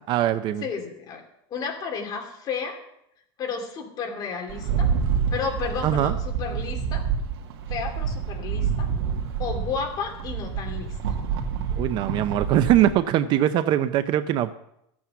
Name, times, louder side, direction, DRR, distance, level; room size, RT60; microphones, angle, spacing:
voice 1, 0.1-0.7 5.8-6.2 11.7-14.5, right 12 dB, 35° right, 12 dB, 0.5 m, -22 dB
voice 2, 0.6-1.2 1.5-2.8 3.4-4.9 5.3-7.0 7.7-8.9 9.4-11.0, left 5 dB, 30° left, 3 dB, 2.5 m, -32 dB
Rattle, 4.5-12.9, right 6 dB, 80° right, 2.0 m, -28 dB
13.5 x 8.7 x 6.9 m, 0.78 s
supercardioid pair, 155°, 13 cm